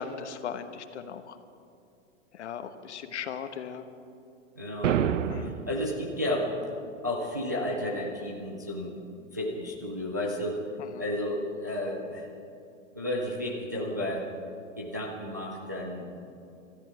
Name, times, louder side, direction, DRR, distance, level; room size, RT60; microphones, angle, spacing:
voice 1, 0.0-1.3 2.3-3.8 5.3-5.5 10.8-11.0, left 7 dB, 60° left, 9 dB, 1.1 m, -38 dB
voice 2, 4.6-5.0 5.4-6.5 7.0-9.0 9.3-10.7 11.0-12.3 12.9-14.3 14.8-16.2, left 1 dB, 15° right, -2 dB, 0.4 m, -32 dB
sound 1, 4.8-5.9, right 9 dB, 75° right, 0.8 m, -27 dB
19.0 x 13.5 x 4.7 m, 2.6 s
hypercardioid pair, 175°, 38 cm